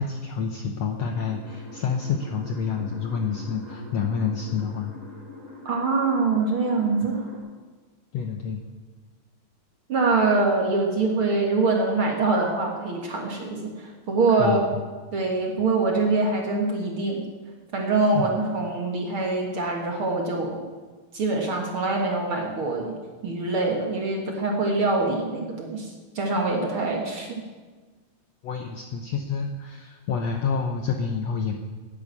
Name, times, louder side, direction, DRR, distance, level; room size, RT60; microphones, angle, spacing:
voice 1, 0.0-4.9 8.1-8.6 14.4-14.6 18.1-18.4 19.9-20.0 28.4-31.5, left 6 dB, 70° left, 4 dB, 1.6 m, -28 dB
sound 1, 1.1-7.4, left 2 dB, 5° left, 4.9 m, -43 dB
voice 2, 5.7-7.3 9.9-14.6 15.1-17.2 17.7-20.6 21.1-22.9 23.2-25.9 26.2-27.4, right 3 dB, 45° right, 0 dB, 2.1 m, -24 dB
11.0 x 10.5 x 8.5 m, 1.4 s
omnidirectional pair, 4.0 m